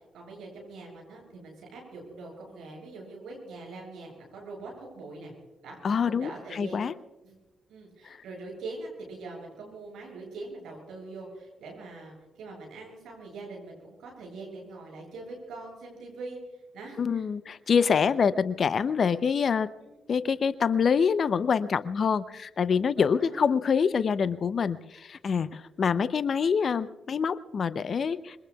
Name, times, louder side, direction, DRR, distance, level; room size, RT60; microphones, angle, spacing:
voice 1, 0.1-5.3 5.6-5.8 6.0-6.8 7.2-7.4 7.7-16.4 16.7-17.3 19.8-19.9 23.0-23.5, right 3 dB, 70° right, -1 dB, 7.8 m, -43 dB
voice 2, 5.8-6.9 8.0-8.2 17.0-19.7 20.1-28.4, left 6 dB, 55° left, 16 dB, 0.6 m, -26 dB
26.0 x 23.5 x 2.3 m, 1.1 s
hypercardioid pair, 40°, 0 cm